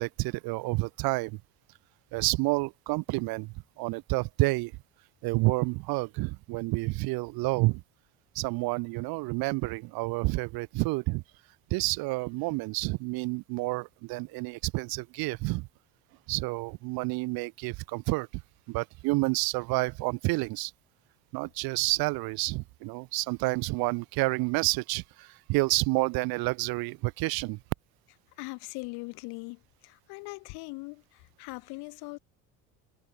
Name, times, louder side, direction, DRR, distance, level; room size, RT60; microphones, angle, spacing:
voice 1, 0.0-1.4 2.1-4.7 5.2-7.8 8.3-11.2 11.7-15.7 16.3-18.3 18.7-20.7 21.3-27.6, right 24 dB, 70° right, 0.8 m, -29 dB
voice 2, 28.4-32.2, left 28 dB, 75° left, 2.2 m, -41 dB
supercardioid pair, 90°, 38 cm